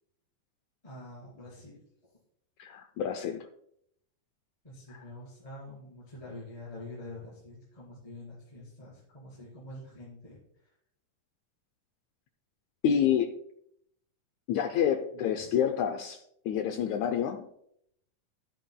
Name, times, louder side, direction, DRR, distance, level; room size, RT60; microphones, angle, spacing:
voice 1, 0.8-2.1 4.6-10.4 15.1-15.5, left 2 dB, 10° left, -7 dB, 3.5 m, -46 dB
voice 2, 2.6-3.5 12.8-13.3 14.5-16.2 16.4-17.5, left 8 dB, 85° left, 6 dB, 1.6 m, -28 dB
13.5 x 9.0 x 2.2 m, 0.72 s
omnidirectional pair, 3.9 m